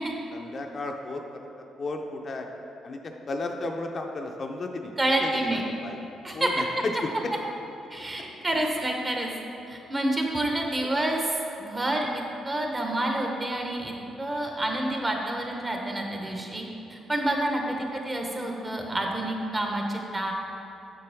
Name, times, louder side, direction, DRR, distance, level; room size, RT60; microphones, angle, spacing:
voice 1, 0.3-2.5 2.8-4.9 5.2-7.3 16.2-16.6, left 2 dB, 45° left, 3 dB, 0.5 m, -34 dB
voice 2, 5.0-5.6 6.2-6.5 7.9-9.3 9.7-11.3 11.6-16.6 16.9-20.3, right 1 dB, 25° right, 1 dB, 1.0 m, -28 dB
6.8 x 6.7 x 3.4 m, 2.9 s
cardioid pair, 90°, 0 cm